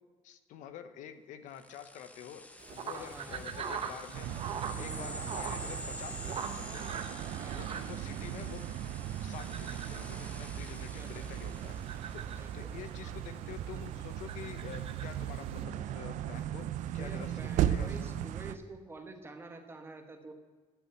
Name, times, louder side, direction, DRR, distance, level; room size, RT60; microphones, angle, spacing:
voice 1, 0.2-2.4 2.7-4.3 4.8-7.0 7.5-8.6 9.2-11.8 12.1-12.2 12.5-16.7 16.9-18.1, left 9 dB, 85° left, 10 dB, 0.9 m, -48 dB
sound 1, 1.5-12.6, left 2 dB, 10° left, 0.9 m, -48 dB
sound 2, 2.6-15.6, right 6 dB, 50° right, 1.0 m, -44 dB
voice 2, 2.9-3.4 4.8-5.2 7.3-7.8 10.9-11.3 12.4-12.7 13.0-13.1 16.9-20.3, right 3 dB, 20° right, 5 dB, 1.3 m, -48 dB
sound 3, 4.1-18.6, right 11 dB, 85° right, 0.5 m, -37 dB
11.0 x 6.0 x 8.4 m, 1.3 s
cardioid pair, 140°, 12 cm